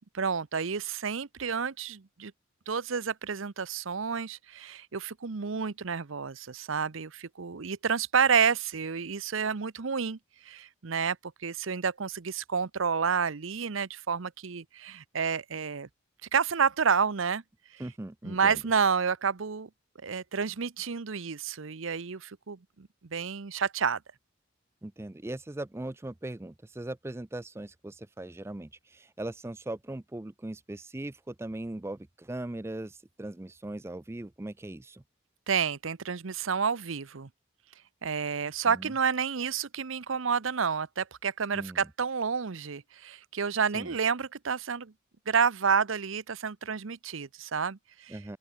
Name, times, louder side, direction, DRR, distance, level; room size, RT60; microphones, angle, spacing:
voice 1, 0.1-2.3 2.7-10.2 10.4-11.2 11.4-15.9 16.3-17.4 18.2-19.7 20.0-24.0 35.5-37.3 38.0-44.9 45.3-48.2, right 6 dB, 75° right, 0.8 m, -29 dB
voice 2, 17.8-18.6 24.8-35.0 38.7-38.9 41.5-41.9 43.7-43.9 48.1-48.4, right 1 dB, 10° right, 0.4 m, -39 dB
open air
head